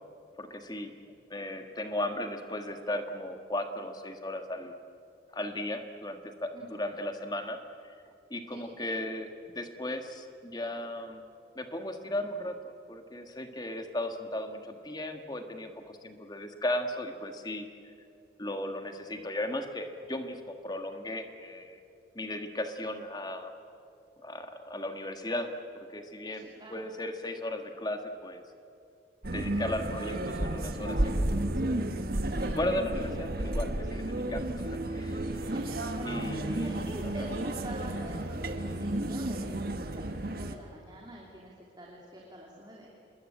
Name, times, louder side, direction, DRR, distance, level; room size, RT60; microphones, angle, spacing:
voice 1, 0.4-1.0 1.3-4.7 5.3-7.9 8.3-11.2 11.5-17.7 18.4-21.8 22.1-23.5 24.2-28.4 29.3-31.9 32.6-35.4 36.0-36.8 37.2-37.3, left 1 dB, 20° left, 6 dB, 1.7 m, -36 dB
voice 2, 6.5-6.8 8.5-8.6 26.3-26.9 29.3-29.7 32.3-32.9 35.4-42.9, right 1 dB, 25° right, -2 dB, 3.0 m, -46 dB
sound 1, 29.2-40.6, right 1 dB, 50° right, 1.4 m, -32 dB
27.5 x 21.5 x 8.7 m, 2.6 s
head